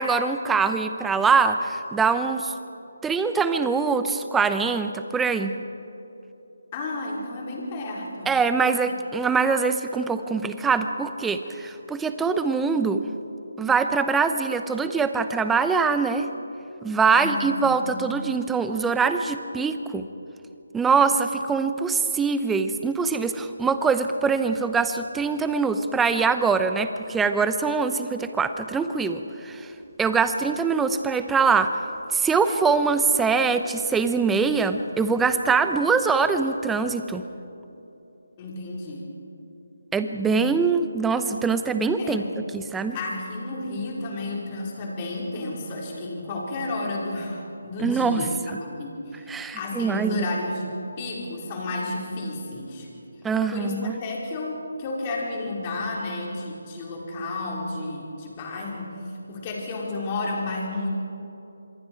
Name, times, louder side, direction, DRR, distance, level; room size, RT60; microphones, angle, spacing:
voice 1, 0.0-2.5 3.0-5.6 8.3-13.0 13.6-16.3 16.8-20.1 20.7-29.7 30.0-31.8 32.1-37.2 39.9-42.2 42.5-43.0 47.8-48.3 49.3-50.3 53.2-54.0, right 5 dB, 5° right, 9 dB, 0.8 m, -23 dB
voice 2, 6.7-8.3 17.1-18.0 38.4-39.1 40.2-40.4 42.0-42.3 42.9-48.3 48.6-52.9 53.5-59.0 59.3-60.9, left 2 dB, 25° left, -2 dB, 4.6 m, -32 dB
26.5 x 22.5 x 4.7 m, 3.0 s
figure-of-eight pair, 165°, 0 cm